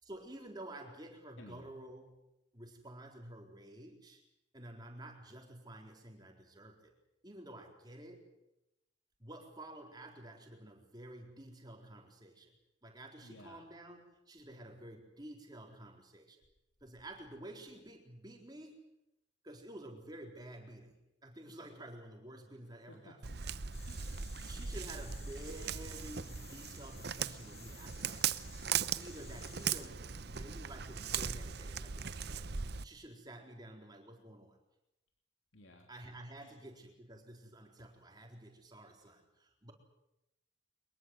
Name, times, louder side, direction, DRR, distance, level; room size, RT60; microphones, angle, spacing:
voice 1, 0.0-2.2 2.5-4.2 4.5-6.9 7.2-8.2 9.2-12.6 12.8-16.4 16.8-18.8 19.4-23.5 24.4-28.3 28.9-32.5 32.8-34.6 35.9-39.7, right 1 dB, 20° right, 2 dB, 4.2 m, -51 dB
voice 2, 13.2-13.6 22.9-24.2 27.7-27.8 28.5-28.7 35.5-35.9 36.4-36.5, left 1 dB, 70° left, 2 dB, 3.0 m, -57 dB
Walk footsteps, 23.2-32.8, right 7 dB, 55° right, 0.8 m, -39 dB
sound 1, 23.7-29.9, left 7 dB, 30° left, 2.1 m, -57 dB
23.0 x 22.5 x 7.9 m, 0.89 s
head